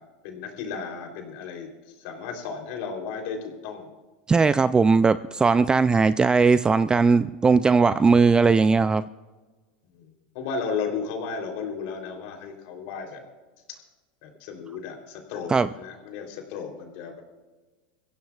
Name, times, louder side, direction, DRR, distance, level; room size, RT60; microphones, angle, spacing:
voice 1, 0.0-1.7 2.0-3.9 7.7-8.1 9.9-13.2 13.7-13.8 14.2-17.2, left 5 dB, 65° left, 2 dB, 3.4 m, -34 dB
voice 2, 4.3-9.0 15.5-15.7, right 4 dB, 15° right, 14 dB, 0.4 m, -19 dB
23.0 x 16.0 x 2.4 m, 1.3 s
hypercardioid pair, 110°, 5 cm